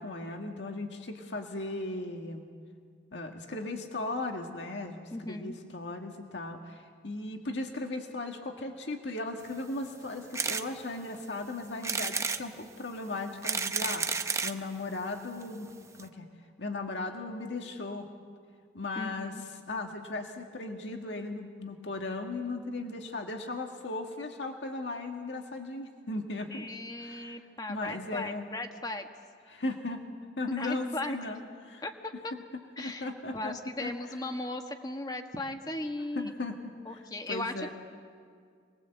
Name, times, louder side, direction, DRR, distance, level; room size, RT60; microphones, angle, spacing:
voice 1, 0.0-2.4 3.1-15.7 16.0-16.3 16.6-18.1 18.7-19.3 19.7-26.7 27.0-27.4 27.7-28.4 29.5-30.0 30.4-31.4 31.7-31.8 32.8-33.9 36.2-37.7, left 2 dB, 85° left, 3 dB, 1.8 m, -37 dB
voice 2, 5.1-5.6 18.9-19.4 26.5-29.1 30.5-31.3 31.8-32.3 32.8-36.3 36.8-37.7, left 1 dB, 20° left, 5 dB, 1.4 m, -37 dB
sound 1, 10.3-10.7 11.1-11.2 11.8-12.4 13.2-14.6 15.4-15.5 15.7-15.8 16.0-16.1, right 5 dB, 15° right, 0.6 m, -31 dB
25.5 x 21.0 x 7.9 m, 2.1 s
head